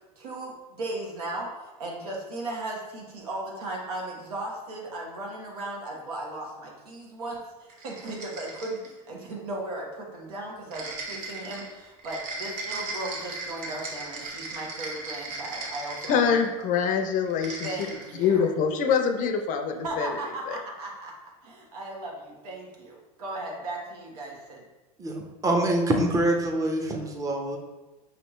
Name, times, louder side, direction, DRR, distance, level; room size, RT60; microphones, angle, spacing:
voice 1, 0.2-1.5 1.8-7.4 7.8-8.8 9.1-16.4 17.6-18.5 19.8-21.1 21.4-24.6, right 2 dB, 85° right, -1 dB, 1.3 m, -36 dB
sound 1, 7.7-9.0 10.7-16.6 17.3-18.2, right 3 dB, 45° right, 1.1 m, -37 dB
voice 2, 16.1-17.8 18.2-20.1 20.5-20.6, left 6 dB, 45° left, 6 dB, 0.5 m, -24 dB
voice 3, 25.0-27.6, right 1 dB, 15° right, 2 dB, 0.7 m, -25 dB
5.2 x 3.2 x 3.1 m, 1.1 s
supercardioid pair, 115°, 19 cm